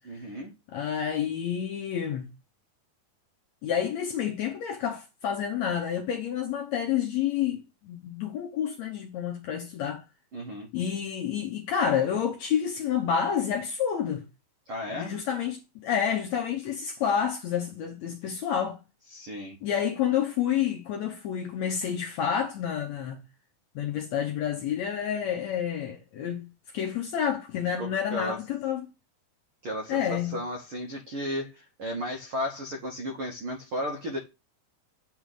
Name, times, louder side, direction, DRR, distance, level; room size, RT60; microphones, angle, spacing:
voice 1, 0.1-0.5 10.3-10.7 14.7-15.1 19.1-19.5 27.8-28.4 29.6-34.2, equal, 90° right, 1.1 m, -34 dB
voice 2, 0.7-2.3 3.6-10.0 10.7-14.2 14.9-18.8 19.6-23.2 23.7-26.5 26.7-28.9 29.9-30.4, left 8 dB, 75° left, 1.7 m, -29 dB
8.2 x 3.6 x 6.4 m
omnidirectional pair, 4.2 m